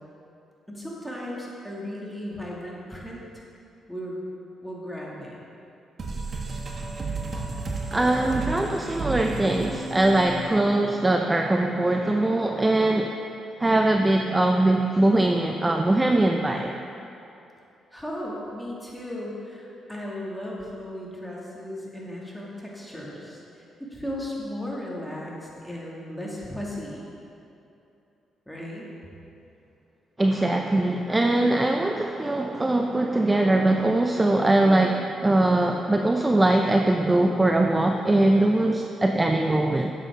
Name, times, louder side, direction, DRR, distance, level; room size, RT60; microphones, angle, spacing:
voice 1, 0.7-3.4 3.9-4.2 4.6-5.4 17.9-27.0 28.5-28.9, left 1 dB, 5° left, -5 dB, 2.3 m, -36 dB
sound 1, 6.0-11.3, right 3 dB, 45° right, 1.2 m, -33 dB
voice 2, 7.9-13.1 13.6-16.7 30.2-39.9, right 2 dB, 20° right, 3 dB, 0.5 m, -21 dB
11.0 x 7.4 x 3.7 m, 2.8 s
cardioid pair, 75°, 0 cm